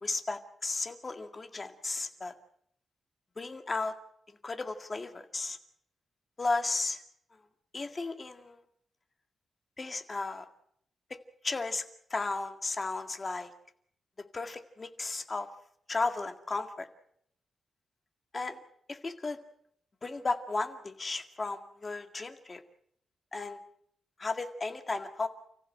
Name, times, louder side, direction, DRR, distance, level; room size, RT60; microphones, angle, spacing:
voice 1, 0.0-2.3 3.4-3.9 4.4-5.6 6.4-7.0 7.7-8.6 9.8-10.5 11.4-11.8 12.1-13.5 14.3-15.5 15.9-16.9 18.3-18.6 18.9-19.4 20.0-22.6 23.3-23.6 24.2-25.3, left 3 dB, 25° left, 7 dB, 2.0 m, -34 dB
30.0 x 15.0 x 7.8 m, 0.70 s
wide cardioid pair, 150°, 0 cm